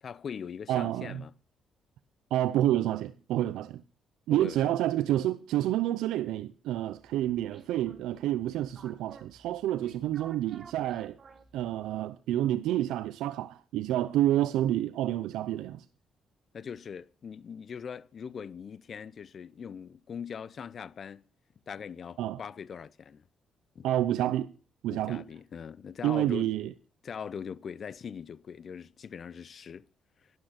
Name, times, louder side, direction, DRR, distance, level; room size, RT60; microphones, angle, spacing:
voice 1, 0.0-1.3 4.3-4.7 16.5-21.2 21.7-23.2 23.7-23.9 24.9-26.5 27.0-29.8, left 7 dB, 50° left, 0.7 m, -41 dB
voice 2, 0.7-1.2 2.3-3.8 4.3-11.2 11.5-15.8 22.2-22.4 23.8-24.5 24.8-25.2 26.0-26.7, right 13 dB, 90° right, 0.6 m, -29 dB
sound 1, 6.9-12.0, right 5 dB, 45° right, 1.9 m, -55 dB
11.5 x 11.0 x 5.9 m
cardioid pair, 90°, 0 cm